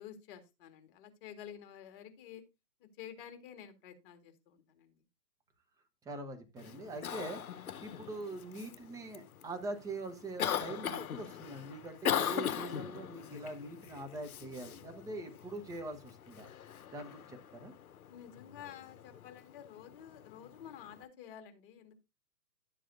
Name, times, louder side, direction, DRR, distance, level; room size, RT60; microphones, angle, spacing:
voice 1, 0.0-2.4 2.8-5.0 18.1-22.0, left 9 dB, 35° left, 8 dB, 1.8 m, -51 dB
voice 2, 6.0-16.5 16.9-17.7, right 2 dB, 5° right, 7 dB, 0.9 m, -43 dB
Cough, 6.6-21.0, left 9 dB, 60° left, 1.0 m, -41 dB
12.0 x 7.5 x 2.6 m, 0.24 s
figure-of-eight pair, 125°, 48 cm